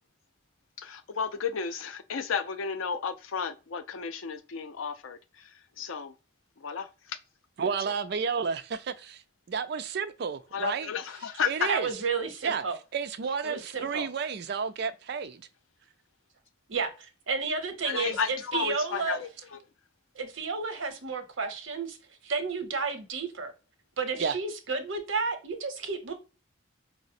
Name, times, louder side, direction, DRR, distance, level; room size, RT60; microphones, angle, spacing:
voice 1, 0.8-6.1 6.6-7.2 7.9-8.0 10.5-11.7 17.8-19.6, left 6 dB, 85° left, 0.5 m, -33 dB
voice 2, 7.6-9.2 9.5-10.9 11.4-11.9 12.4-12.6 12.9-15.4 24.2-24.4, right 6 dB, 55° right, 0.4 m, -31 dB
voice 3, 11.7-12.8 13.4-14.1 16.7-19.2 20.1-22.0 22.2-23.5 24.0-26.1, right 4 dB, 75° right, 0.8 m, -32 dB
4.8 x 2.0 x 2.6 m
head